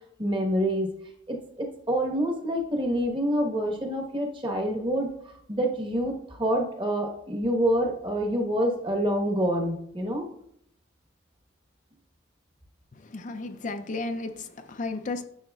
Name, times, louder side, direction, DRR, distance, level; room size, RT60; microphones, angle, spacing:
voice 1, 0.2-0.9 1.3-5.1 5.5-10.3, equal, 25° right, 1 dB, 1.2 m, -27 dB
voice 2, 12.9-15.2, left 3 dB, 40° left, 8 dB, 0.5 m, -34 dB
10.5 x 6.2 x 2.3 m, 0.71 s
head